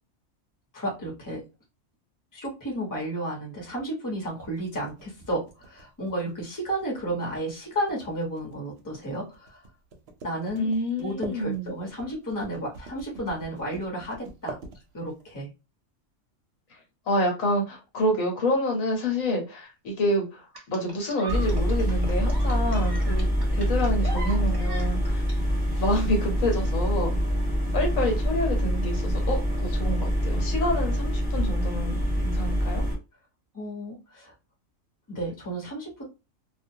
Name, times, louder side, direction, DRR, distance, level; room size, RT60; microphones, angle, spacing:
voice 1, 0.7-1.4 2.3-9.6 10.2-10.7 11.0-14.6 14.9-15.5 33.5-34.3 35.1-36.0, right 1 dB, 15° left, -2 dB, 0.9 m, -32 dB
sound 1, 4.3-15.3, right 4 dB, 60° right, 0.7 m, -44 dB
voice 2, 10.6-11.7 17.1-25.2 25.8-27.1 27.7-32.8, left 1 dB, 75° left, 1 dB, 1.3 m, -28 dB
sound 2, 20.5-25.3 26.5-26.7, right 2 dB, 20° right, 0.7 m, -40 dB
sound 3, 21.3-33.0, equal, ahead, 1.3 m, -25 dB
2.3 x 2.3 x 2.7 m, 0.27 s
omnidirectional pair, 1.4 m